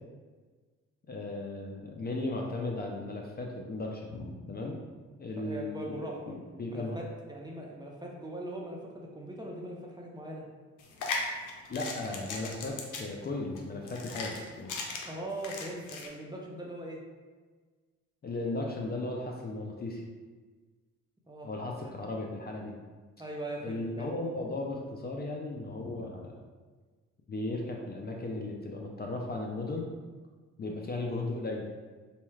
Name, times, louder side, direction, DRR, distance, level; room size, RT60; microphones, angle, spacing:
voice 1, 1.1-4.8 5.2-7.0 11.7-14.8 18.2-20.0 21.4-22.7 23.6-26.4 27.3-29.9 30.6-31.7, left 2 dB, 30° left, 0 dB, 0.5 m, -36 dB
voice 2, 5.4-6.4 6.7-10.5 15.0-17.0 21.3-21.9 23.2-24.1, right 1 dB, 15° right, -1 dB, 0.6 m, -41 dB
sound 1, 10.8-16.1, left 3 dB, 80° left, 0.6 m, -38 dB
4.2 x 2.3 x 3.2 m, 1.4 s
cardioid pair, 90°, 30 cm